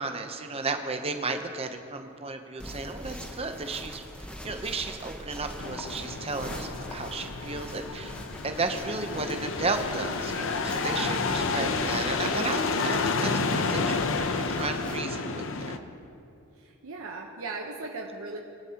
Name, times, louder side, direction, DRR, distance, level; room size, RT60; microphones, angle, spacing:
voice 1, 0.0-15.8, right 3 dB, 25° right, 6 dB, 0.8 m, -34 dB
sound 1, 2.6-15.0, equal, 5° left, 0.8 m, -43 dB
sound 2, 5.6-15.8, left 4 dB, 60° left, 0.7 m, -30 dB
voice 2, 6.4-6.7 11.5-11.9 16.6-18.4, right 3 dB, 70° right, -1 dB, 1.0 m, -39 dB
21.5 x 11.0 x 2.9 m, 2.6 s
head